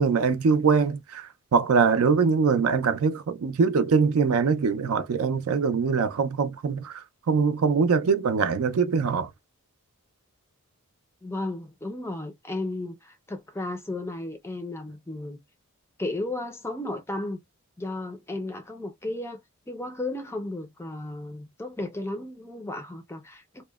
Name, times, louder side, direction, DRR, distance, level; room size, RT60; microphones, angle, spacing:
voice 1, 0.0-9.3, right 5 dB, 75° right, 0.4 m, -23 dB
voice 2, 11.2-15.4 16.0-17.4 17.8-19.4 19.7-23.6, left 2 dB, 10° left, 0.4 m, -34 dB
2.8 x 2.0 x 2.2 m
head